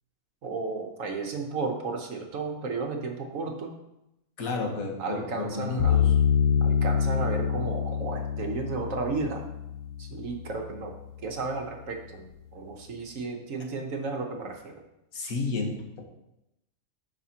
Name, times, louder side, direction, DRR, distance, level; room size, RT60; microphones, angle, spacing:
voice 1, 0.4-3.7 5.0-6.0 6.6-9.4 10.0-10.9 11.2-14.8, right 4 dB, 60° right, 3 dB, 1.3 m, -33 dB
voice 2, 4.4-6.1 15.1-16.1, left 3 dB, 70° left, 1 dB, 1.6 m, -31 dB
sound 1, 5.8-10.9, left 7 dB, 85° left, 1.3 m, -26 dB
12.0 x 5.0 x 2.9 m, 0.88 s
omnidirectional pair, 1.6 m